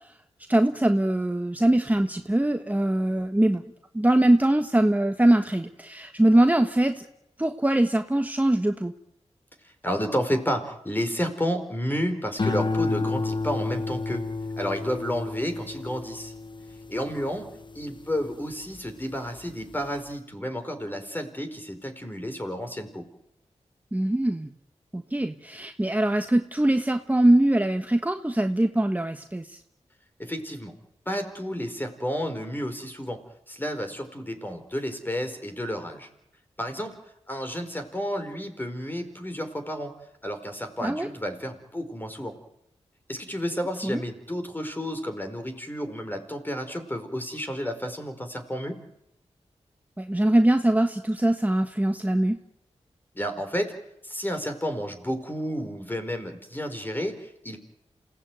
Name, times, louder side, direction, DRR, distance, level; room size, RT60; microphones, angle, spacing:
voice 1, 0.5-3.6 3.9-7.0 7.4-8.9 23.9-24.5 24.9-29.5 40.8-41.1 43.8-44.0 50.0-52.4, right 1 dB, 15° right, 6 dB, 1.4 m, -22 dB
voice 2, 9.8-14.2 14.6-16.3 16.9-17.4 17.7-23.1 30.2-30.7 31.1-33.2 33.5-36.1 36.6-37.0 37.3-39.9 40.2-42.3 43.1-48.8 53.1-53.7 54.0-57.6, equal, 15° left, 6 dB, 4.8 m, -31 dB
sound 1, 12.4-18.9 19.4-19.9, left 3 dB, 45° left, 1.0 m, -31 dB
28.0 x 17.0 x 9.3 m, 0.81 s
cardioid pair, 60°, 12 cm